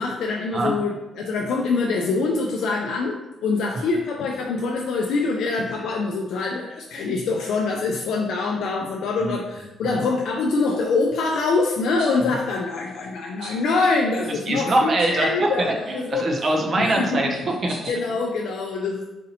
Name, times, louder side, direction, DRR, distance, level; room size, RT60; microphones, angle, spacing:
voice 1, 0.0-16.3 16.8-17.2 17.9-19.0, left 3 dB, 65° left, 0 dB, 0.3 m, -24 dB
sound 1, 11.4-11.5 12.0-12.2 12.4-13.1 13.4-13.7 14.4-15.3 15.6-16.4 17.0-17.9, right 1 dB, 75° right, 1.1 m, -42 dB
voice 2, 14.3-17.7, right 1 dB, 30° right, 1 dB, 0.4 m, -23 dB
4.1 x 2.7 x 2.7 m, 1.0 s
cardioid pair, 175°, 0 cm